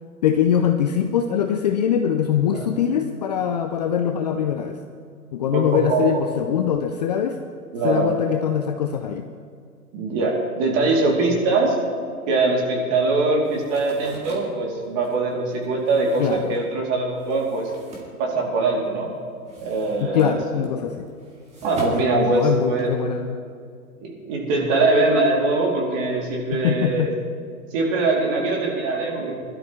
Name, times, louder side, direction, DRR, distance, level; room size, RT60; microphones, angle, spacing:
voice 1, 0.2-4.8 5.3-7.4 7.8-9.3 16.2-16.5 20.0-21.1 21.8-23.4 26.6-27.1, left 8 dB, 30° left, 5 dB, 0.5 m, -22 dB
voice 2, 5.5-6.2 7.7-8.1 9.9-11.7 12.3-17.7 18.2-19.1 19.6-20.3 21.6-22.9 24.0-27.1 27.7-29.3, right 3 dB, 35° right, -1 dB, 3.1 m, -22 dB
sound 1, 13.4-18.9 19.2-23.1, right 1 dB, 15° right, 2.3 m, -41 dB
21.0 x 12.5 x 3.2 m, 2.3 s
hypercardioid pair, 130°, 45 cm